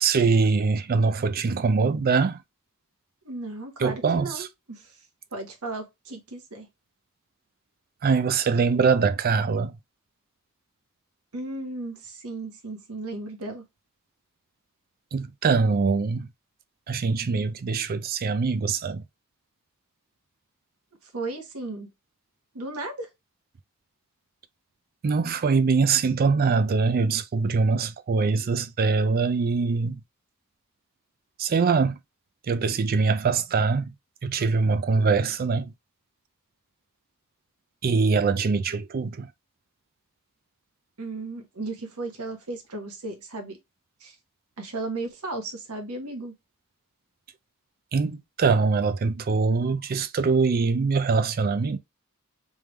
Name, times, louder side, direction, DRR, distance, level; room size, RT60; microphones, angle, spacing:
voice 1, 0.0-2.4 3.8-4.5 8.0-9.7 15.1-16.3 16.9-19.0 25.0-30.0 31.4-32.0 32.5-33.9 34.2-35.7 37.8-39.3 47.9-51.8, right 4 dB, 45° right, 0.4 m, -23 dB
voice 2, 3.2-5.0 5.3-6.7 11.3-13.6 21.0-21.9 22.5-23.1 41.0-43.6 44.0-44.1 44.6-46.3, right 2 dB, 85° right, 1.3 m, -35 dB
3.5 x 3.4 x 3.1 m
head